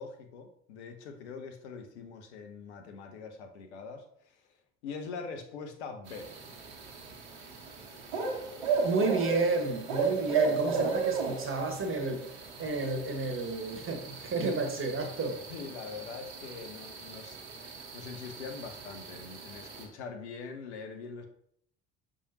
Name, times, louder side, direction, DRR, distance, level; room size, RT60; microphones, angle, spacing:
voice 1, 0.0-4.4 4.8-6.3 10.7-11.0 12.6-12.7 15.5-17.4 17.6-21.3, left 5 dB, 80° left, 5 dB, 0.9 m, -43 dB
sound 1, 6.1-19.9, right 5 dB, 75° right, 1.3 m, -35 dB
voice 2, 8.8-12.3 12.6-15.4, right 3 dB, 40° right, 4 dB, 1.7 m, -31 dB
6.6 x 5.0 x 2.9 m, 0.66 s
hypercardioid pair, 55°, 33 cm